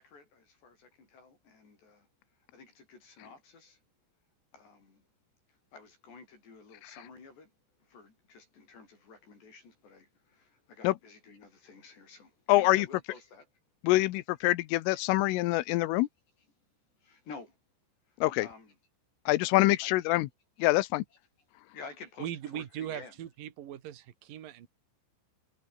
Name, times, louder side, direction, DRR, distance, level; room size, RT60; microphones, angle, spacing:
voice 1, 0.0-2.1 2.3-3.8 4.5-5.0 5.5-7.5 7.8-13.5 14.9-15.0 15.6-15.8 17.0-17.6 18.1-18.7 19.4-19.9 21.7-23.1, left 4 dB, 55° left, 9.6 m, -51 dB
voice 2, 12.5-12.9 13.8-16.1 18.2-18.5 19.3-20.3 20.6-21.1, left 19 dB, 80° left, 3.5 m, -25 dB
voice 3, 22.2-24.7, right 11 dB, 55° right, 3.1 m, -40 dB
omnidirectional pair, 5.9 m